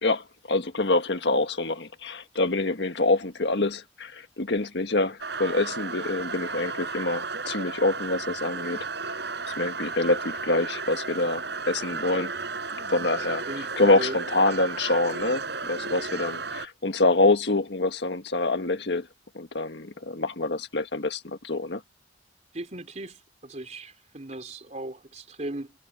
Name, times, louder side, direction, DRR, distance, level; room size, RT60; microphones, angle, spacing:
voice 1, 0.0-8.8 9.6-12.3 12.9-13.4 13.8-19.1 19.3-21.8, left 2 dB, 70° left, 1.6 m, -26 dB
sound 1, 5.2-16.7, right 4 dB, 65° right, 5.7 m, -34 dB
voice 2, 13.2-14.3 22.5-25.7, right 1 dB, 40° right, 3.9 m, -37 dB
head